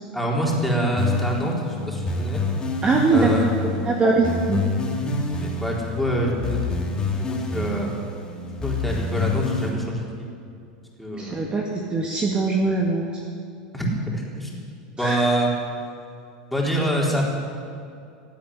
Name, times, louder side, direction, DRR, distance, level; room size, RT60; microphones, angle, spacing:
voice 1, 0.1-1.5 1.9-2.4 3.1-3.5 5.4-6.6 7.1-7.9 8.5-10.3 11.0-11.5 13.7-14.6 15.0-15.5 16.5-17.2, right 1 dB, 5° left, -3 dB, 4.1 m, -25 dB
sound 1, 1.0-9.7, left 3 dB, 20° left, 2.9 m, -27 dB
voice 2, 2.8-4.7 11.2-11.6 11.9-13.1 15.0-15.3, right 3 dB, 25° right, 0 dB, 1.9 m, -22 dB
16.5 x 8.7 x 9.8 m, 2.4 s
hypercardioid pair, 105°, 4 cm